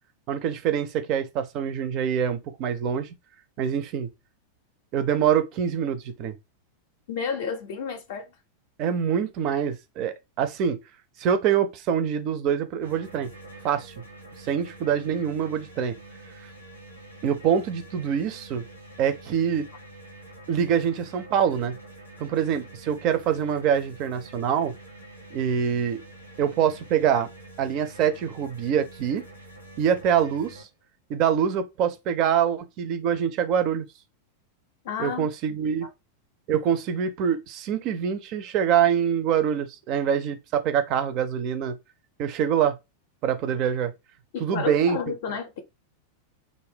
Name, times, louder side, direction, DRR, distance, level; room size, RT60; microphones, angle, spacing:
voice 1, 0.3-3.1 3.6-4.1 4.9-6.3 8.8-10.8 11.2-13.3 13.6-13.9 14.5-15.9 17.2-18.6 19.0-19.7 20.5-21.8 22.2-24.7 25.3-26.0 26.4-27.3 27.6-29.2 29.8-30.7 31.1-33.9 35.0-35.9 36.5-41.7 42.2-42.7 43.2-43.9 44.4-45.0, right 8 dB, 40° right, 0.4 m, -25 dB
voice 2, 7.1-8.3 34.8-35.6 44.3-45.6, left 6 dB, 55° left, 0.4 m, -31 dB
sound 1, 12.8-30.6, right 2 dB, 90° right, 0.8 m, -46 dB
2.5 x 2.1 x 3.3 m
figure-of-eight pair, 90°, 0 cm